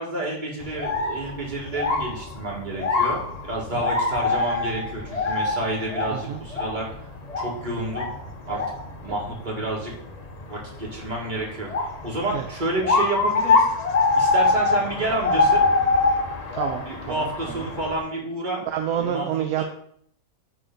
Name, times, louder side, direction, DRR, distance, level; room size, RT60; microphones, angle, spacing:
voice 1, 0.0-7.1 7.4-8.1 8.4-8.6 9.0-9.9 10.5-13.7 14.2-15.6 16.8-18.6 19.0-19.6, right 2 dB, 25° right, -3 dB, 1.8 m, -30 dB
sound 1, 0.6-18.0, left 3 dB, 70° left, 0.3 m, -25 dB
voice 2, 16.5-17.7 18.7-19.6, right 9 dB, 70° right, 5 dB, 0.9 m, -28 dB
9.2 x 3.4 x 3.8 m, 0.64 s
omnidirectional pair, 1.9 m